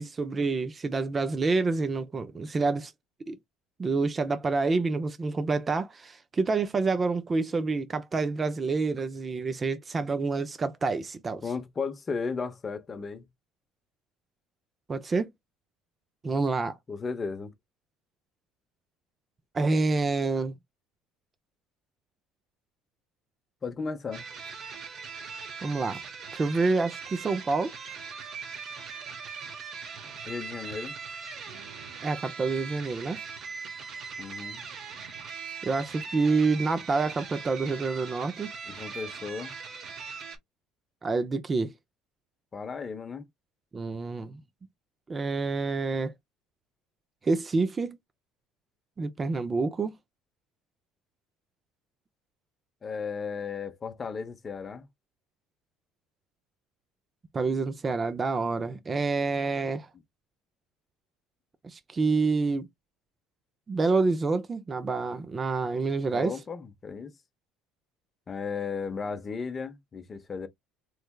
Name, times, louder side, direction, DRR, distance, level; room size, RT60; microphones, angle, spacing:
voice 1, 0.0-2.9 3.3-3.4 3.8-11.4 14.9-15.3 16.2-16.8 19.5-20.5 25.6-26.0 26.3-27.7 32.0-33.2 35.6-38.5 41.0-41.7 43.7-44.4 45.1-46.1 47.2-48.0 49.0-49.9 57.3-59.9 61.6-62.7 63.7-66.3, right 3 dB, 20° right, 0.5 m, -27 dB
voice 2, 11.4-13.3 16.9-17.5 23.6-24.3 30.3-31.0 34.2-34.6 38.7-39.5 42.5-43.3 52.8-54.9 66.1-67.1 68.3-70.5, left 5 dB, 25° left, 0.7 m, -35 dB
sound 1, 24.1-40.4, right 5 dB, 45° right, 0.9 m, -40 dB
3.4 x 3.1 x 2.3 m
cardioid pair, 135°, 0 cm